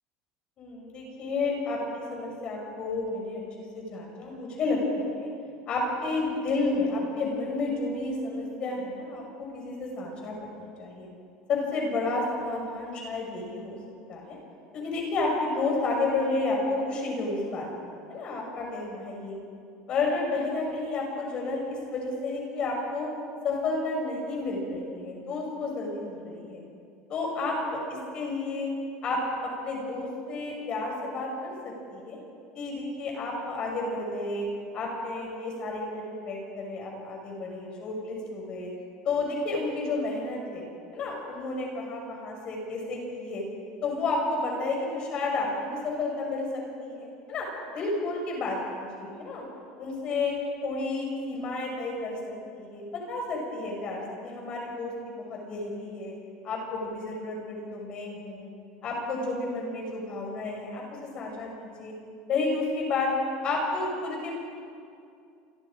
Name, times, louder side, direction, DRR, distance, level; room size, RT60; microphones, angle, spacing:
voice 1, 0.6-3.4 3.7-5.3 5.7-11.1 11.5-13.8 14.1-14.4 14.7-19.4 19.9-23.1 23.4-26.6 27.1-28.7 29.0-29.2 29.6-32.2 32.5-34.5 34.7-38.7 39.0-40.7 40.9-43.4 43.8-49.4 49.8-50.3 50.6-52.2 52.5-56.1 56.4-58.5 58.8-60.8 61.1-61.9 62.3-63.1 63.4-64.4, left 3 dB, 35° left, 0 dB, 6.2 m, -31 dB
28.0 x 21.5 x 5.1 m, 2.4 s
supercardioid pair, 145°, 3 cm